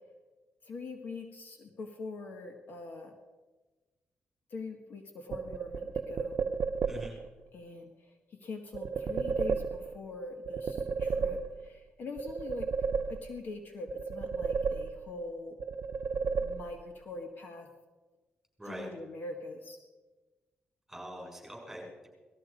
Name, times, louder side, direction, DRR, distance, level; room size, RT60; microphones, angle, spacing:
voice 1, 0.6-3.1 4.5-6.4 7.5-15.6 16.4-17.7 18.7-19.8, left 3 dB, 60° left, 4 dB, 1.7 m, -43 dB
sound 1, 5.3-7.3 8.7-10.1 10.5-11.8 12.2-13.5 13.9-15.3 15.6-17.0, right 5 dB, 65° right, 0.7 m, -33 dB
voice 2, 6.9-7.2 18.6-18.9 20.9-22.1, equal, 5° right, -1 dB, 6.5 m, -43 dB
18.5 x 13.5 x 5.2 m, 1.2 s
cardioid pair, 110°, 4 cm